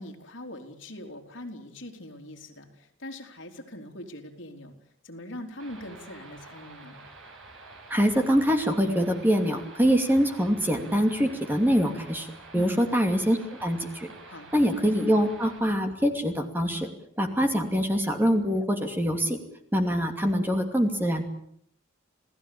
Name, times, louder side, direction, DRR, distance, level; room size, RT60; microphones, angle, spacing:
voice 1, 0.0-4.7 5.0-7.0 12.5-12.9 14.3-14.7, left 1 dB, 65° left, 2 dB, 3.9 m, -42 dB
sound 1, 5.6-15.6, right 3 dB, 80° right, 7.8 m, -48 dB
voice 2, 7.9-12.3 12.5-14.1 14.5-16.9 17.2-19.4 19.7-21.2, equal, 10° right, 5 dB, 2.6 m, -24 dB
28.5 x 17.0 x 8.7 m, 0.70 s
head